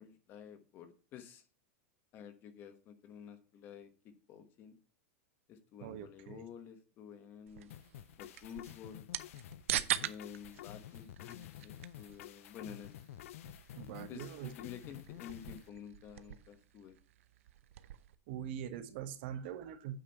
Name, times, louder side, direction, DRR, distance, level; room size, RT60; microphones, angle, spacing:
voice 1, 0.0-1.4 2.1-4.8 5.5-7.7 8.2-9.1 9.8-12.9 14.1-17.0, left 8 dB, 30° left, 9 dB, 1.2 m, -51 dB
voice 2, 5.8-6.4 13.7-14.5 18.3-20.0, right 9 dB, 50° right, 11 dB, 1.1 m, -43 dB
sound 1, 7.5-18.1, right 13 dB, 75° right, 0.7 m, -44 dB
sound 2, 7.7-15.7, left 13 dB, 80° left, 0.4 m, -51 dB
9.1 x 4.9 x 5.6 m, 0.37 s
supercardioid pair, 170°, 7 cm